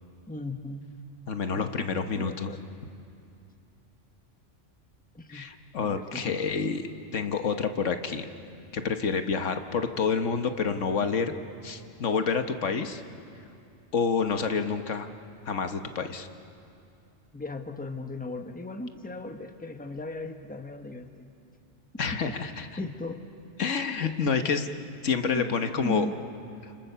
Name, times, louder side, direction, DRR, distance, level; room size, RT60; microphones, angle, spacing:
voice 1, 0.3-0.8 1.5-2.6 5.1-5.5 5.8-6.4 17.3-21.3 22.8-23.2 25.2-26.1, left 1 dB, 5° left, 6 dB, 1.2 m, -37 dB
voice 2, 1.3-2.5 5.3-8.3 8.7-11.3 11.6-13.0 13.9-15.1 15.5-16.3 22.0-22.7 23.6-24.7 25.0-26.1 26.6-26.7, left 5 dB, 85° left, 7 dB, 1.6 m, -28 dB
30.0 x 28.5 x 6.9 m, 2.5 s
omnidirectional pair, 1.2 m